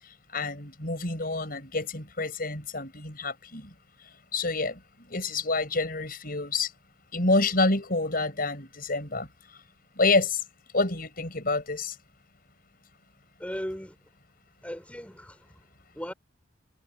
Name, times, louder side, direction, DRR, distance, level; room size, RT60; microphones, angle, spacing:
voice 1, 0.3-3.7 4.3-4.8 5.1-6.7 7.1-9.3 10.0-10.4 10.7-11.9, left 3 dB, 50° left, 5.9 m, -27 dB
voice 2, 13.4-14.0 14.6-15.7 15.9-16.1, equal, 5° left, 4.2 m, -37 dB
head